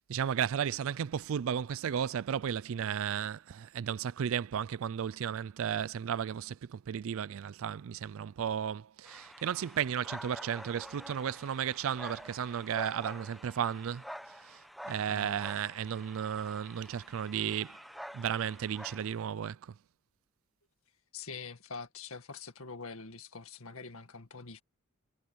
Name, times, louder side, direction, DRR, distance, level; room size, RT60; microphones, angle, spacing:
voice 1, 0.1-17.8 18.1-19.7, right 8 dB, 65° right, 0.4 m, -34 dB
sound 1, 9.0-19.3, equal, ahead, 1.1 m, -48 dB
voice 2, 15.1-15.4 21.1-24.6, left 4 dB, 70° left, 2.0 m, -44 dB
head